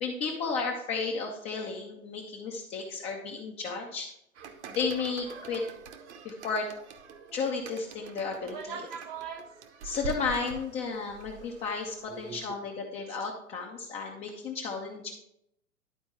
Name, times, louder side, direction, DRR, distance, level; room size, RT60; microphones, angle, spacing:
voice 1, 0.0-4.1 4.7-5.6 6.2-6.7 7.3-8.9 9.8-15.1, left 4 dB, 15° left, 0 dB, 0.5 m, -33 dB
sound 1, 4.3-12.5, right 5 dB, 50° right, 1.1 m, -45 dB
voice 2, 8.4-9.5 12.1-12.4 13.2-13.3, right 6 dB, 25° right, 6 dB, 0.7 m, -40 dB
11.0 x 4.3 x 4.4 m, 0.78 s
figure-of-eight pair, 115°, 43 cm